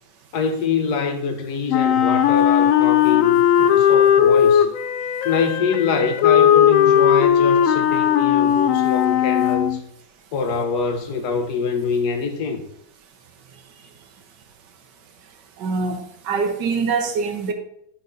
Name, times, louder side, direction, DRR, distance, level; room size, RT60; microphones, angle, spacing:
voice 1, 0.3-4.7 5.2-9.8 10.3-12.6, left 5 dB, 65° left, 1.4 m, -24 dB
Wind instrument woodwind instrument, 1.7-9.8, left 9 dB, 90° left, 0.7 m, -17 dB
voice 2, 15.6-17.5, right 4 dB, 70° right, 1.6 m, -24 dB
11.5 x 4.6 x 4.0 m
omnidirectional pair, 2.0 m